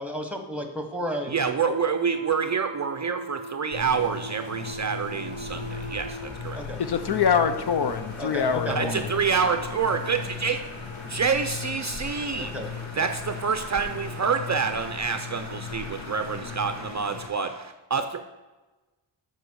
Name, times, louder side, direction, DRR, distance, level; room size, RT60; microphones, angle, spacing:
voice 1, 0.0-1.3 6.5-6.8 8.2-8.9 12.4-12.7, equal, 5° right, 5 dB, 1.2 m, -32 dB
voice 2, 1.3-6.6 8.7-10.7 11.0-18.2, right 5 dB, 40° right, 8 dB, 0.5 m, -27 dB
sound 1, 2.0-6.2, right 3 dB, 15° left, 3.0 m, -38 dB
sound 2, 3.7-17.3, left 6 dB, 75° left, 1.1 m, -38 dB
Alarm, 5.3-16.9, left 1 dB, 30° left, 2.4 m, -45 dB
voice 3, 6.8-9.0, left 6 dB, 55° left, 10 dB, 0.7 m, -24 dB
8.3 x 5.5 x 6.2 m, 1.2 s
wide cardioid pair, 120°, 47 cm